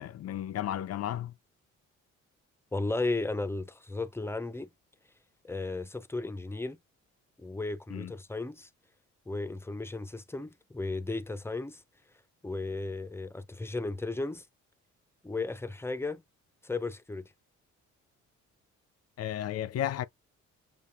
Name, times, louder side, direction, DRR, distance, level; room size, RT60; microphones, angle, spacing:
voice 1, 0.0-1.3 7.9-8.1 19.2-20.1, left 11 dB, 55° left, 0.5 m, -33 dB
voice 2, 2.7-4.7 5.4-6.8 7.4-8.7 9.3-11.8 12.4-14.5 15.2-16.2 16.6-17.3, left 3 dB, 10° left, 0.5 m, -35 dB
6.8 x 2.5 x 2.4 m
cardioid pair, 90°, 30 cm